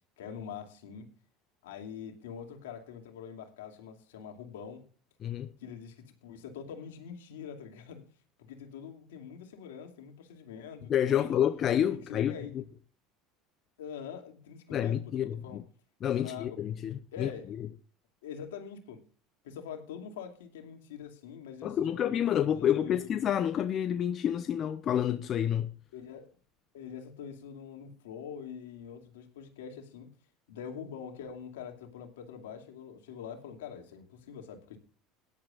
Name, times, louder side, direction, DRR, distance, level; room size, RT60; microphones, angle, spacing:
voice 1, 0.2-1.1 1.6-4.8 5.6-8.0 8.4-11.3 12.1-12.5 13.8-15.6 16.1-16.6 17.1-17.5 18.2-19.0 19.4-22.3 22.5-23.1 25.9-26.3 26.7-30.1 30.5-34.8, left 7 dB, 85° left, 2.6 m, -44 dB
voice 2, 10.9-12.6 14.7-15.6 16.0-17.3 17.6-17.7 21.6-25.7, left 10 dB, 45° left, 0.7 m, -29 dB
18.0 x 11.0 x 2.5 m
hypercardioid pair, 85°, 0 cm